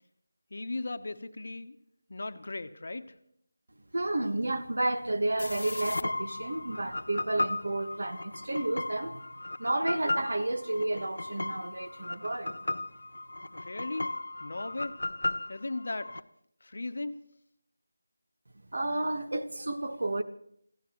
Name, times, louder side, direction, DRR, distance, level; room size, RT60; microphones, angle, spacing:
voice 1, 0.5-1.8 2.1-3.1 13.5-14.1 14.4-15.0 15.5-16.1 16.6-17.2, left 2 dB, 50° left, 1.0 m, -37 dB
voice 2, 3.9-9.2 9.6-12.5 18.7-20.2, right 2 dB, 65° right, 1.6 m, -31 dB
sound 1, 5.4-16.2, left 2 dB, 80° left, 0.7 m, -36 dB
28.0 x 16.0 x 3.1 m
figure-of-eight pair, 180°, 0 cm